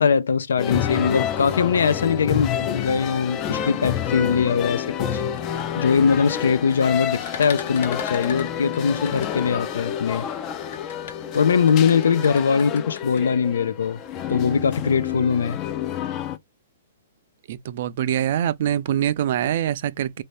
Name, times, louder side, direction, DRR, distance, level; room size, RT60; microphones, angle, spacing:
voice 1, 0.0-5.2 5.7-10.2 11.3-14.0 14.3-15.6, left 6 dB, 90° left, 0.5 m, -21 dB
sound 1, 0.6-16.4, left 9 dB, 25° left, 0.4 m, -29 dB
sound 2, 5.3-9.9 10.6-13.2, left 7 dB, 65° left, 1.0 m, -38 dB
voice 2, 17.5-20.2, right 10 dB, 50° right, 0.4 m, -24 dB
3.1 x 2.7 x 3.2 m
hypercardioid pair, 155°, 0 cm